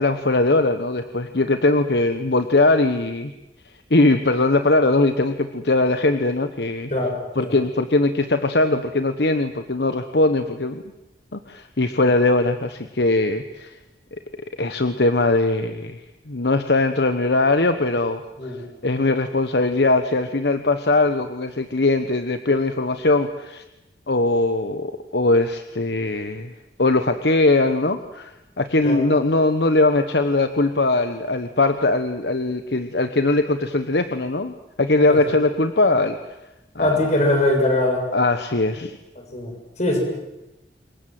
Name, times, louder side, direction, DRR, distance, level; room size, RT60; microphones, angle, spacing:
voice 1, 0.0-3.3 3.9-6.9 7.4-10.8 11.3-13.8 14.6-16.0 16.3-18.6 18.8-23.6 24.1-26.5 26.8-36.2 36.7-37.1 38.1-39.0, left 2 dB, 65° left, 8 dB, 1.2 m, -20 dB
voice 2, 36.8-38.0 39.3-40.0, left 1 dB, 40° left, 2 dB, 7.1 m, -22 dB
27.0 x 22.0 x 7.8 m, 0.95 s
head